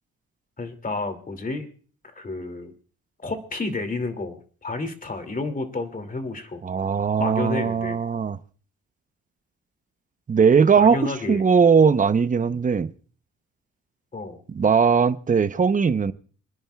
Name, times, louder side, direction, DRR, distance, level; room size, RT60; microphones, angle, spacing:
voice 1, 0.6-1.7 2.2-2.7 3.2-6.6 7.2-8.0 10.8-11.4 14.1-14.4, left 3 dB, 25° left, 2.4 m, -30 dB
voice 2, 6.6-8.4 10.3-12.9 14.5-16.1, right 6 dB, 25° right, 0.7 m, -19 dB
28.0 x 10.5 x 2.3 m
cardioid pair, 90°, 30 cm